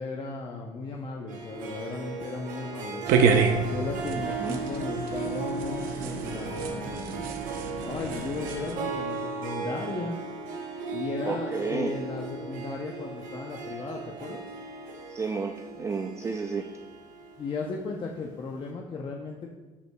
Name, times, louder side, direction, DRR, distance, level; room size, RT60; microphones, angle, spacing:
voice 1, 0.0-3.0 3.6-7.2 7.8-10.2 10.9-14.4 17.4-19.5, left 4 dB, 35° left, 1 dB, 0.7 m, -36 dB
Harp, 1.3-18.1, right 4 dB, 70° right, 1.1 m, -36 dB
sound 1, 3.1-8.7, right 5 dB, 90° right, 0.8 m, -28 dB
voice 2, 11.3-11.9 15.1-16.7, right 4 dB, 20° right, 5 dB, 0.4 m, -32 dB
13.5 x 5.4 x 2.3 m, 1.3 s
cardioid pair, 125°, 14 cm